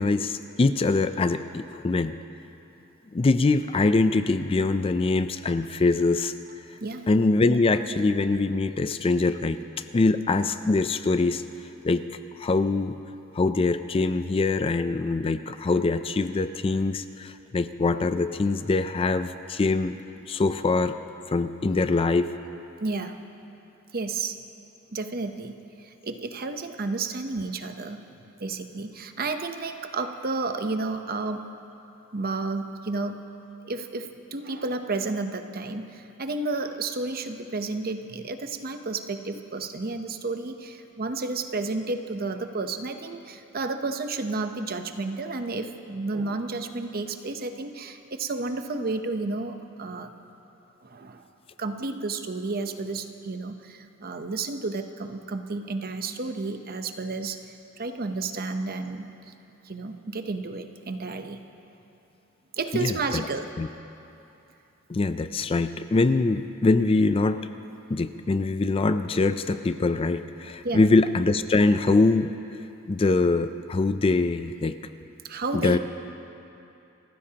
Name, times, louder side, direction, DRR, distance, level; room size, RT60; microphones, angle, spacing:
voice 1, 0.0-2.2 3.1-6.3 7.1-9.6 9.9-11.4 11.8-12.1 12.4-13.0 13.3-20.0 20.3-21.0 21.3-22.3 62.7-63.3 63.6-63.7 64.9-67.5 67.9-72.3 72.9-74.8 75.5-75.8, left 3 dB, 25° left, 10 dB, 0.4 m, -23 dB
voice 2, 22.8-23.2 23.9-24.4 24.9-28.1 28.4-31.5 32.1-33.2 33.6-50.1 50.8-51.3 51.6-57.4 57.8-59.1 59.6-61.4 62.6-63.5 70.6-70.9 75.2-75.8, right 3 dB, 45° right, 7 dB, 0.8 m, -31 dB
29.5 x 15.0 x 2.9 m, 2.8 s
head